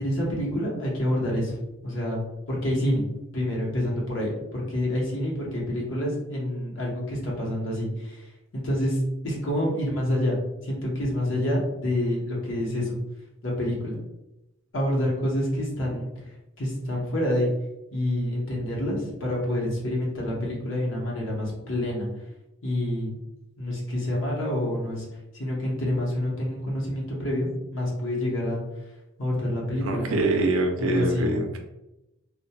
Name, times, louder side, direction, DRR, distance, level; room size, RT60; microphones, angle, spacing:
voice 1, 0.0-1.6 1.8-2.2 2.5-8.3 8.5-9.0 9.2-10.4 10.6-13.0 13.4-14.0 14.7-16.1 16.6-17.5 17.9-22.1 22.6-23.2 23.6-25.1 25.3-28.6 29.2-30.2 30.8-31.3, left 1 dB, 65° left, -3 dB, 0.8 m, -27 dB
voice 2, 29.8-31.6, right 2 dB, 75° right, 4 dB, 0.5 m, -24 dB
2.2 x 2.2 x 2.8 m, 0.92 s
head